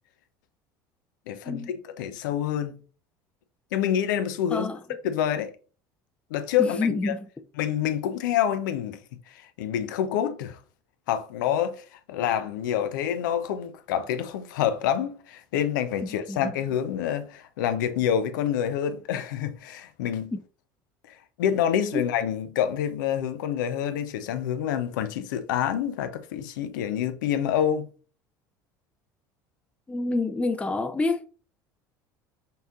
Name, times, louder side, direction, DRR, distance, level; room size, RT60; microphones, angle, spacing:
voice 1, 1.3-2.8 3.7-4.7 5.0-5.5 6.3-6.8 7.0-7.1 7.6-9.0 9.3-10.6 11.1-20.3 21.1-27.9, left 9 dB, 85° left, 0.5 m, -27 dB
voice 2, 6.6-7.3 16.0-16.6 20.3-20.4 21.9-22.1 29.9-31.3, left 3 dB, 10° left, 0.4 m, -28 dB
5.4 x 2.7 x 2.4 m
hypercardioid pair, 85°, 10 cm